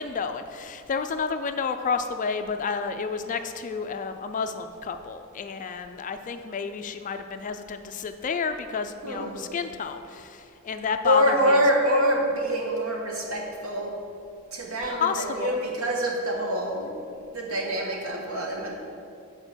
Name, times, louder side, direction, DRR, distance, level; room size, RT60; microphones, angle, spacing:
voice 1, 0.0-11.6 14.8-15.6, left 5 dB, 35° left, 8 dB, 0.4 m, -30 dB
voice 2, 9.0-9.5 11.0-14.0 14.5-16.9 17.3-18.7, equal, 70° right, -1 dB, 1.4 m, -25 dB
8.8 x 4.3 x 6.2 m, 2.5 s
head